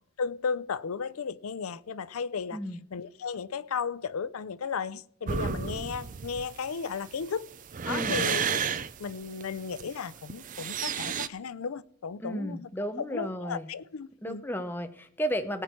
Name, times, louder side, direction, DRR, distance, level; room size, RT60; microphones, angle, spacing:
voice 1, 0.2-2.6 2.9-7.5 7.9-8.6 9.0-12.7 13.0-14.5, left 6 dB, 85° left, 0.5 m, -34 dB
sound 1, 5.3-11.3, right 7 dB, 35° right, 0.4 m, -32 dB
voice 2, 7.9-8.2 12.2-13.7 14.2-15.6, equal, 10° left, 0.7 m, -33 dB
18.0 x 8.6 x 4.5 m
head